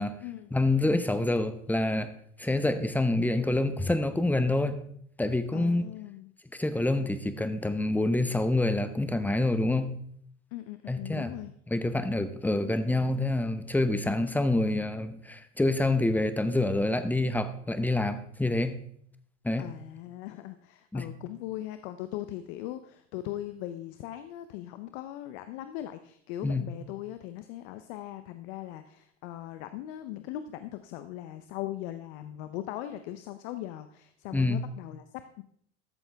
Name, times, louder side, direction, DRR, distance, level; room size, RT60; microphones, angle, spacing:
voice 1, 0.5-2.1 2.4-4.8 5.2-5.8 6.5-9.9 10.9-11.3 11.7-18.8 19.4-19.7 20.9-21.1 26.4-26.7 34.3-34.6, left 2 dB, 5° left, 10 dB, 0.9 m, -27 dB
voice 2, 5.5-6.3 10.5-11.5 19.6-35.4, left 13 dB, 65° left, 10 dB, 0.8 m, -39 dB
13.5 x 7.2 x 3.5 m, 0.66 s
hypercardioid pair, 95°, 35 cm